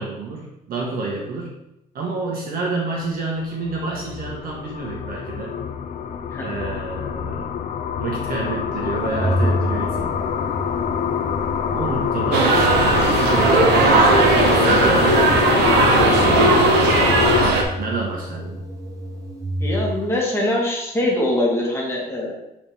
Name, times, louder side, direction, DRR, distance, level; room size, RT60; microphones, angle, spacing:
voice 1, 0.0-1.5 1.9-5.6 6.4-7.5 8.0-10.2 11.7-12.5 13.2-16.7 17.8-18.6, right 3 dB, 60° right, -2 dB, 1.6 m, -29 dB
sound 1, 3.4-17.5, left 7 dB, 50° left, 0.7 m, -24 dB
Organ, 9.0-20.0, equal, 20° right, 1.4 m, -30 dB
sound 2, 12.3-17.6, right 3 dB, 85° right, 1.1 m, -17 dB
voice 2, 19.6-22.3, left 1 dB, 15° left, -4 dB, 2.3 m, -23 dB
8.4 x 4.3 x 3.6 m, 0.86 s
cardioid pair, 110°, 17 cm